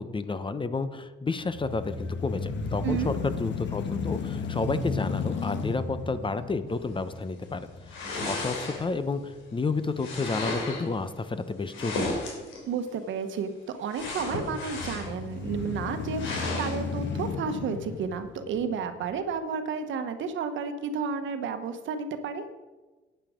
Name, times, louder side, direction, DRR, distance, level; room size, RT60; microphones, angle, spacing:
voice 1, 0.0-12.2, left 3 dB, 25° left, 12 dB, 0.8 m, -31 dB
sound 1, 1.4-9.5 10.0-10.1 14.6-19.1, left 4 dB, 65° left, 1.4 m, -34 dB
voice 2, 2.8-3.1 12.7-22.5, right 5 dB, 75° right, 9 dB, 1.2 m, -32 dB
sound 2, 7.9-9.1 10.0-10.9 11.7-12.6 13.9-15.2 15.6-15.7 16.2-16.8, left 2 dB, 85° left, 3.3 m, -33 dB
12.5 x 9.2 x 5.1 m, 1.2 s
cardioid pair, 90°, 20 cm